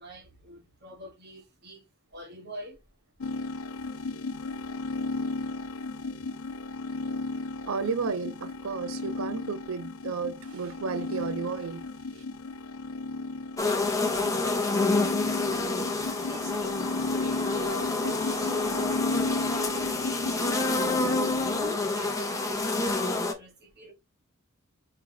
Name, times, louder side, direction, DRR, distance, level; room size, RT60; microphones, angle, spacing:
voice 1, 0.0-2.8 16.3-19.9 20.2-20.9 21.5-23.9, right 1 dB, 50° right, 1.6 m, -44 dB
sound 1, 3.2-21.6, left 3 dB, 75° left, 0.5 m, -34 dB
voice 2, 7.7-11.8, right 5 dB, 70° right, 0.5 m, -32 dB
sound 2, 13.6-23.3, left 3 dB, 15° left, 0.8 m, -28 dB
4.5 x 3.0 x 3.9 m
head